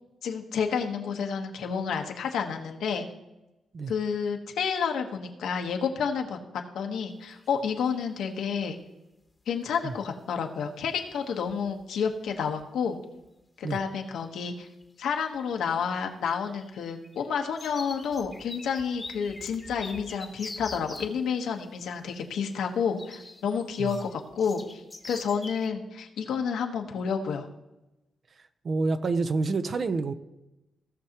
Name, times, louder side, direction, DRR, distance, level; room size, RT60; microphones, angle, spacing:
voice 1, 0.2-3.0 3.9-6.4 6.7-8.8 9.5-13.0 13.6-14.7 15.0-27.5, left 6 dB, 85° left, 1.2 m, -30 dB
sound 1, 7.3-7.5 7.8-8.4 10.4-10.5 11.1-11.2 11.5-11.8 12.1-12.7 13.2-13.3 14.4-14.8 15.1-21.1 23.0-25.7, left 2 dB, 20° left, 1.1 m, -44 dB
voice 2, 28.6-30.1, right 3 dB, 45° right, 0.6 m, -28 dB
17.0 x 6.4 x 2.9 m
cardioid pair, 105°, 0 cm